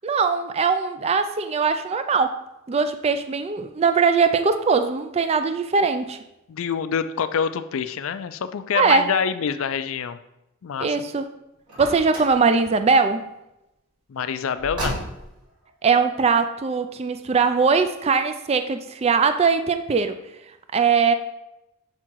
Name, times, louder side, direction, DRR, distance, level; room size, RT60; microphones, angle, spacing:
voice 1, 0.0-2.4 2.7-6.2 8.7-9.1 10.8-11.3 11.8-13.2 15.8-20.2 20.7-21.1, right 5 dB, 30° right, 9 dB, 0.3 m, -21 dB
voice 2, 6.5-10.2 10.6-11.0 14.1-15.0, left 7 dB, 65° left, 12 dB, 0.4 m, -26 dB
Car, 11.7-12.4 14.6-15.4, right 1 dB, 85° right, 2.5 m, -32 dB
7.5 x 3.6 x 4.6 m, 0.91 s
head